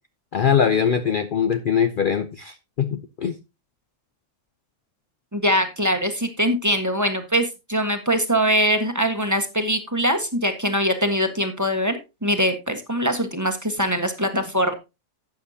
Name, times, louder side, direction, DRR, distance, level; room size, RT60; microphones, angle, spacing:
voice 1, 0.3-3.4, left 7 dB, 50° left, 9 dB, 0.7 m, -22 dB
voice 2, 5.3-14.7, equal, 15° right, 6 dB, 1.4 m, -22 dB
12.0 x 8.3 x 2.8 m, 0.25 s
omnidirectional pair, 1.3 m